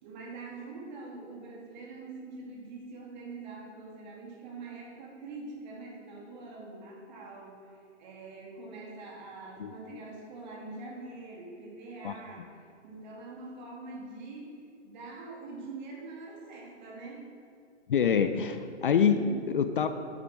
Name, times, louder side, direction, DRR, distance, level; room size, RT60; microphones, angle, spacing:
voice 1, 0.0-7.7 8.0-12.6 12.8-14.6 14.8-17.2 19.2-19.4, right 3 dB, 40° right, -2 dB, 2.3 m, -44 dB
voice 2, 9.6-10.0 12.0-12.1 17.9-19.2 19.5-19.9, left 7 dB, 45° left, 9 dB, 0.5 m, -26 dB
9.4 x 8.1 x 4.5 m, 2.3 s
figure-of-eight pair, 125°, 36 cm